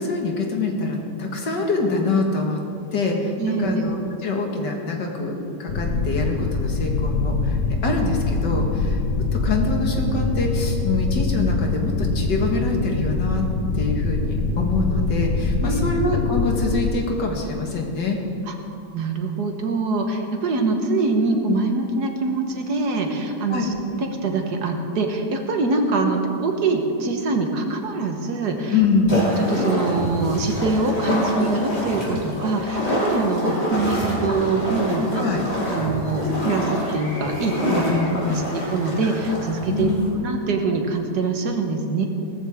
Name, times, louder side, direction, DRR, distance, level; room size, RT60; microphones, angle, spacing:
voice 1, 0.0-2.6 2.9-4.0 4.2-9.0 9.3-13.4 13.7-18.2 23.5-23.7 28.7-29.2 35.1-35.4 37.7-38.5 39.7-40.1, left 3 dB, 80° left, 1 dB, 2.3 m, -24 dB
voice 2, 3.4-3.9 15.6-15.9 18.5-18.6 18.9-23.7 24.0-28.7 29.5-35.3 35.7-37.8 38.3-39.9 40.2-42.1, right 3 dB, 70° right, 4 dB, 1.8 m, -24 dB
sound 1, 5.7-16.9, left 3 dB, 55° left, 1.1 m, -24 dB
sound 2, 29.1-40.1, equal, 35° left, 3.3 m, -26 dB
18.0 x 13.5 x 3.6 m, 2.6 s
omnidirectional pair, 1.8 m